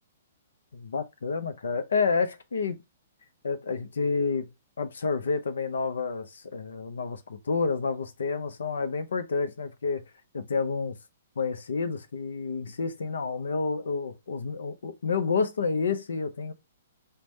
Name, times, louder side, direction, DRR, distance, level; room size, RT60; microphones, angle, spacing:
voice 1, 0.7-2.8 3.4-4.5 4.8-10.0 10.3-11.0 11.4-16.5, left 4 dB, 80° left, 0.5 m, -29 dB
3.3 x 2.1 x 4.1 m
hypercardioid pair, 135°, 0 cm